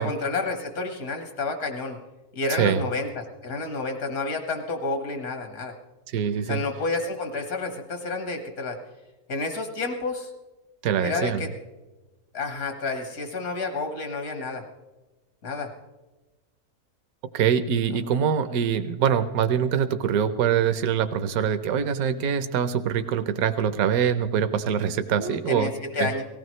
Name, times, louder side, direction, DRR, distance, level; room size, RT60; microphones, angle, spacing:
voice 1, 0.0-2.0 2.3-5.7 6.5-8.8 9.3-10.3 11.0-11.5 12.3-14.6 15.4-15.7 17.9-18.0 25.2-26.2, left 3 dB, 75° left, 5 dB, 1.8 m, -30 dB
voice 2, 2.5-2.8 6.1-6.6 10.8-11.4 17.3-25.7 26.0-26.1, right 8 dB, 80° right, 11 dB, 1.2 m, -24 dB
18.5 x 16.5 x 3.1 m, 1.1 s
omnidirectional pair, 1.5 m